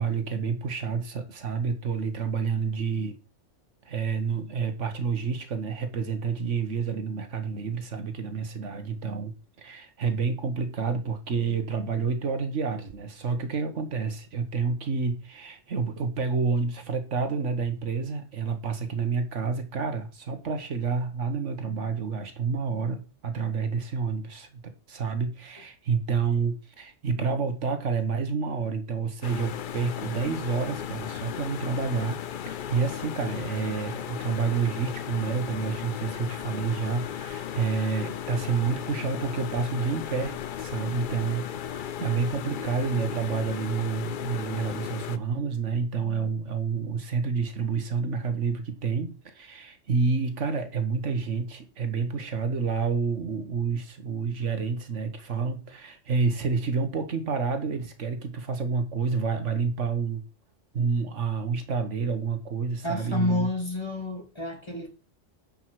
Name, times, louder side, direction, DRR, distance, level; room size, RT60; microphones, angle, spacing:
voice 1, 0.0-3.2 3.8-9.3 9.6-24.5 24.9-60.2 60.7-63.5, right 5 dB, 75° right, 1.6 m, -29 dB
sound 1, 29.2-45.2, left 9 dB, 55° left, 0.6 m, -36 dB
voice 2, 62.8-64.9, left 2 dB, 20° left, 2.2 m, -29 dB
10.0 x 5.6 x 4.7 m
omnidirectional pair, 1.2 m